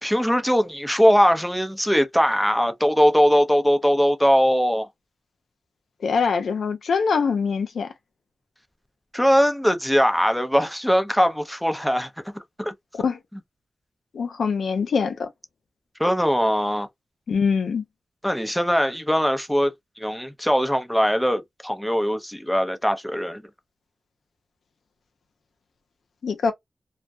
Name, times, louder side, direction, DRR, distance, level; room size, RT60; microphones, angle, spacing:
voice 1, 0.0-4.9 9.1-12.1 12.6-12.7 16.0-16.9 18.2-23.4, equal, 5° left, 0.6 m, -21 dB
voice 2, 6.0-7.9 13.0-13.2 14.1-15.3 17.3-17.8 26.2-26.5, left 5 dB, 90° left, 0.5 m, -23 dB
2.3 x 2.1 x 2.6 m
cardioid pair, 55°, 0 cm